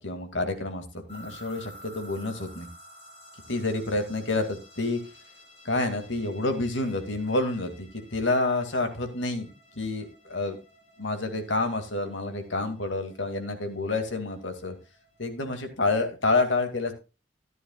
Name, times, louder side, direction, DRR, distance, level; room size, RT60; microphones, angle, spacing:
voice 1, 0.0-2.7 3.5-5.0 5.6-10.6 11.0-14.7 15.2-16.9, left 2 dB, 85° left, 6 dB, 2.4 m, -28 dB
sound 1, 1.1-15.7, equal, 35° left, 5.4 m, -53 dB
14.0 x 11.0 x 2.4 m, 0.29 s
head